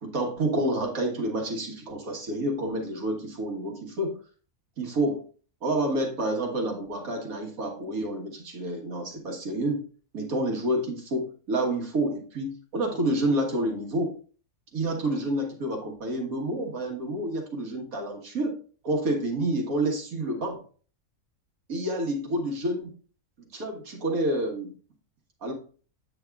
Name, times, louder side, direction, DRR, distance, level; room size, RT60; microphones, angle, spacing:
voice 1, 0.0-4.1 4.8-5.2 5.6-9.8 10.1-14.2 14.7-18.6 18.8-20.6 21.7-22.9 23.4-24.7 25.4-25.5, right 1 dB, 80° right, 1 dB, 1.9 m, -29 dB
8.2 x 6.4 x 2.3 m, 0.41 s
omnidirectional pair, 1.5 m